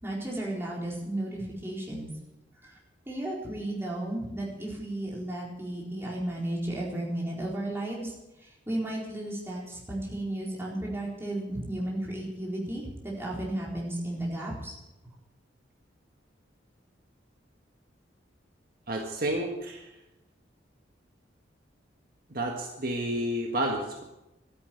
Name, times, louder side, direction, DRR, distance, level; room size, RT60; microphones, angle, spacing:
voice 1, 0.0-2.1 2.6-2.8 3.0-14.8 15.0-15.2, right 1 dB, 15° right, -4 dB, 4.2 m, -34 dB
voice 2, 18.9-19.9 22.3-24.0, right 1 dB, 50° right, 1 dB, 1.6 m, -30 dB
12.5 x 9.9 x 9.3 m, 0.97 s
head